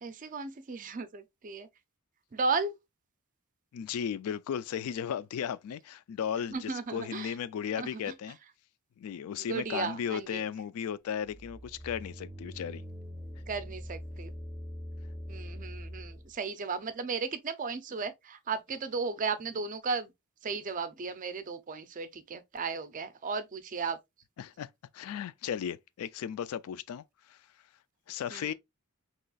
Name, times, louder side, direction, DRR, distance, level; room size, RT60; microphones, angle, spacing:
voice 1, 0.0-1.7 2.3-2.7 6.5-7.3 7.8-8.1 9.4-10.4 13.5-14.3 15.3-20.1 20.4-24.0 28.3-28.5, right 4 dB, 35° right, 0.4 m, -35 dB
voice 2, 3.7-8.4 9.0-12.8 24.4-24.7 24.9-27.4 28.1-28.5, left 8 dB, 80° left, 0.3 m, -35 dB
sound 1, 11.3-16.3, equal, 15° right, 0.8 m, -43 dB
3.9 x 3.0 x 2.3 m
head